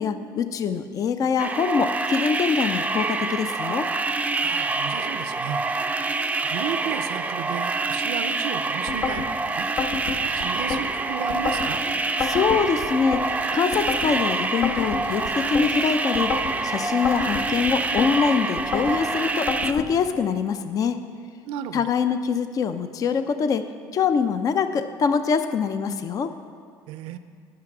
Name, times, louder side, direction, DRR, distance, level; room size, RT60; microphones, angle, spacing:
voice 1, 0.0-3.9 12.2-16.3 16.6-21.0 21.7-26.3, left 6 dB, 40° left, 10 dB, 0.5 m, -24 dB
sound 1, 1.4-19.7, right 3 dB, 15° right, 0.4 m, -26 dB
voice 2, 4.4-5.7 6.4-9.7 10.3-11.8 21.4-21.8 26.9-27.2, right 9 dB, 80° right, 11 dB, 0.6 m, -33 dB
sound 2, 8.9-9.3 9.8-10.8 11.3-11.7 12.2-13.3 13.7-14.1 14.6-15.7 16.1-16.6 17.0-18.1 18.6-19.0 19.5-19.9, left 5 dB, 75° left, 1.3 m, -28 dB
11.0 x 6.0 x 6.0 m, 2.2 s
cardioid pair, 105°, 9 cm